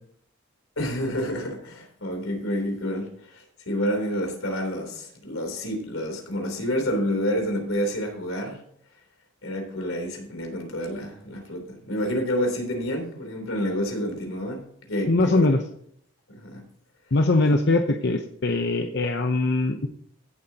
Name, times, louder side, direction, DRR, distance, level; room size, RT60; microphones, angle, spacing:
voice 1, 0.8-8.6 9.4-15.5 16.3-16.6, equal, 80° left, 3 dB, 3.4 m, -29 dB
voice 2, 15.1-15.6 17.1-19.9, left 2 dB, 55° left, 5 dB, 0.8 m, -22 dB
16.5 x 7.8 x 2.9 m, 0.67 s
head